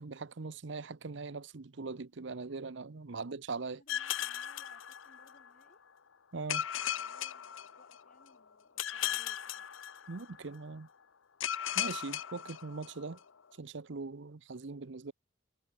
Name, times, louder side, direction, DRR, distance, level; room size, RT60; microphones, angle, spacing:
voice 1, 0.0-3.8 6.3-6.6 10.1-10.9 11.8-13.2 13.6-15.1, right 4 dB, 60° right, 0.8 m, -41 dB
voice 2, 3.7-5.8 6.4-9.7, left 2 dB, 40° left, 6.1 m, -64 dB
sound 1, 3.9-5.5 6.5-8.2 8.8-10.4 11.4-13.2, left 10 dB, 75° left, 0.8 m, -37 dB
head